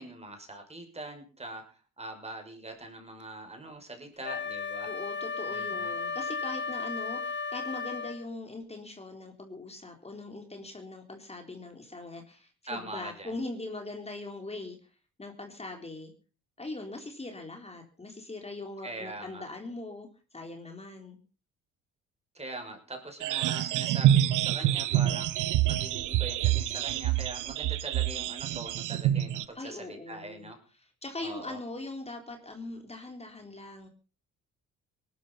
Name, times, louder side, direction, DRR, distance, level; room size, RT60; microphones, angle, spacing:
voice 1, 0.0-4.9 5.5-5.9 12.7-13.4 18.8-19.4 22.3-30.6 31.2-31.6, right 2 dB, 20° right, 4 dB, 6.4 m, -43 dB
Wind instrument woodwind instrument, 4.2-8.2, left 5 dB, 35° left, 1.7 m, -34 dB
voice 2, 4.8-14.8 15.2-16.1 16.6-21.2 29.5-30.5 30.8-33.9, left 2 dB, 20° left, 3 dB, 3.8 m, -41 dB
sound 1, 23.2-29.5, right 12 dB, 85° right, 1.2 m, -27 dB
18.5 x 12.5 x 5.6 m, 0.37 s
cardioid pair, 90°, 30 cm